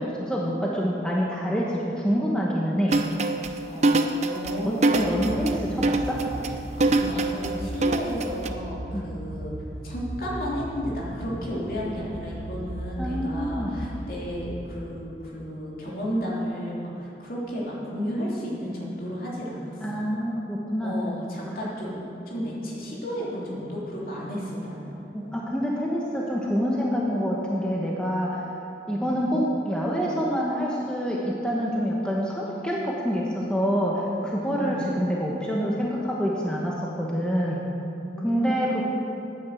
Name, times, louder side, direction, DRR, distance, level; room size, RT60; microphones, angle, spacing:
voice 1, 0.0-3.0 4.7-6.2 8.9-9.1 13.0-13.7 19.8-21.0 25.1-28.4 28.9-37.6 38.2-38.8, equal, 5° left, -4 dB, 1.1 m, -26 dB
sound 1, 2.9-8.5, right 2 dB, 40° right, 0.6 m, -24 dB
voice 2, 3.6-5.1 6.7-9.5 9.8-20.0 20.8-22.0 22.3-25.0 29.0-29.1 34.4-34.9 38.0-38.7, equal, 55° left, -5 dB, 3.1 m, -33 dB
sound 2, 5.0-14.7, equal, 70° right, 1.2 m, -37 dB
10.0 x 9.5 x 7.6 m, 2.8 s
head